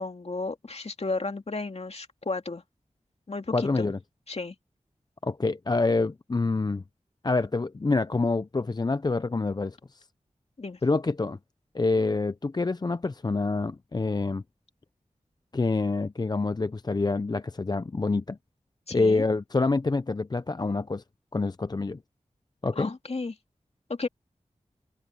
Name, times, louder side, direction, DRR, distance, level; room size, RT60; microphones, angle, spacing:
voice 1, 0.0-2.6 3.3-3.9 4.3-4.5 10.6-10.8 18.9-19.2 22.8-23.3 23.9-24.1, left 3 dB, 55° left, 2.4 m, -33 dB
voice 2, 3.5-4.0 5.2-6.8 7.2-10.1 10.8-11.4 11.7-14.4 15.5-18.4 18.9-21.0 21.3-22.0 22.6-22.9, left 3 dB, 35° left, 0.5 m, -26 dB
open air
cardioid pair, 50°, 13 cm